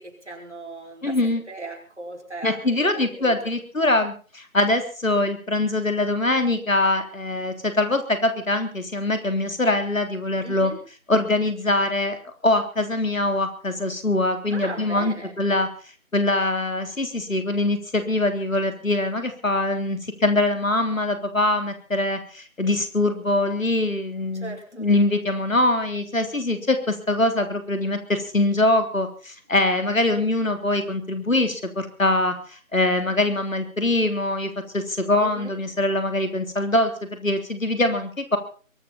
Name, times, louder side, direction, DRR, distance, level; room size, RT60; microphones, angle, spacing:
voice 1, 0.0-3.3 10.4-10.8 14.5-15.3 24.3-24.9 35.2-35.6, right 2 dB, 55° right, 2 dB, 5.7 m, -38 dB
voice 2, 1.0-1.4 2.4-10.7 11.1-12.2 12.4-15.7 16.1-38.4, left 2 dB, 70° left, 7 dB, 3.6 m, -23 dB
22.5 x 13.0 x 4.3 m, 0.39 s
figure-of-eight pair, 175°, 41 cm